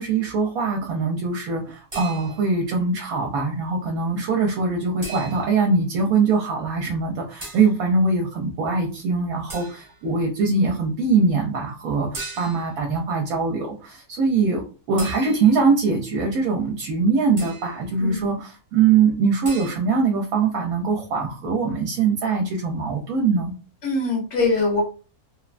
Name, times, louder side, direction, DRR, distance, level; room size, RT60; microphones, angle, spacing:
voice 1, 0.0-14.6 14.9-23.5, right 4 dB, 75° right, 1 dB, 1.0 m, -22 dB
sound 1, 1.9-2.6 5.0-5.7 7.4-7.8 9.5-10.1 12.1-12.8 15.0-15.7 17.4-17.8 19.4-19.8, right 3 dB, 25° right, 0.9 m, -38 dB
voice 2, 23.8-24.8, left 3 dB, 55° left, -4 dB, 1.3 m, -22 dB
3.0 x 2.1 x 2.4 m, 0.35 s
omnidirectional pair, 1.6 m